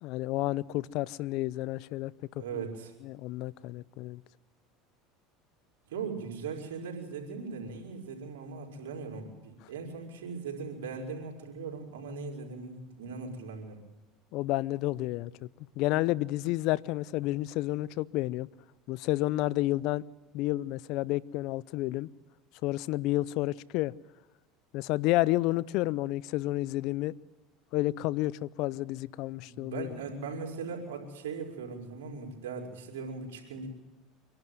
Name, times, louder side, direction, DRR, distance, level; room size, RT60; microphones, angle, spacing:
voice 1, 0.0-2.1 3.0-4.2 14.3-15.3 15.8-18.5 18.9-20.0 20.3-22.1 22.6-23.9 24.7-27.1 27.7-29.9, left 17 dB, 65° left, 0.6 m, -30 dB
voice 2, 2.4-2.9 5.9-13.8 29.4-33.7, right 5 dB, 85° right, 4.9 m, -39 dB
25.5 x 11.5 x 9.3 m
supercardioid pair, 100°, 0 cm